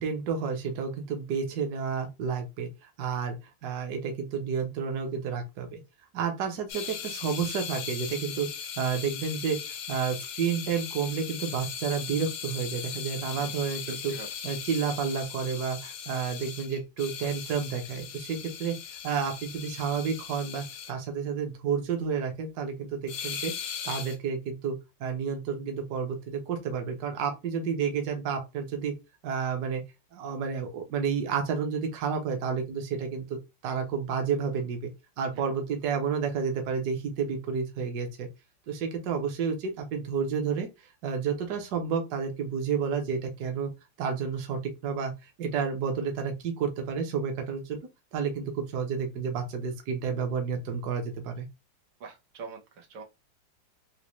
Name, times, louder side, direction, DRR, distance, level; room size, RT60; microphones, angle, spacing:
voice 1, 0.0-5.8 6.1-9.6 9.9-14.1 14.4-18.7 19.0-23.5 23.8-24.7 25.0-28.9 29.2-29.8 30.1-34.9 35.2-38.3 38.7-40.7 41.0-43.7 44.0-47.8 48.1-51.5, right 6 dB, 65° right, 1.2 m, -30 dB
sound 1, 6.7-20.9 23.1-24.2, left 8 dB, 70° left, 0.8 m, -38 dB
voice 2, 13.9-14.3 52.0-53.0, right 5 dB, 85° right, 1.6 m, -43 dB
4.0 x 2.1 x 3.0 m
omnidirectional pair, 2.0 m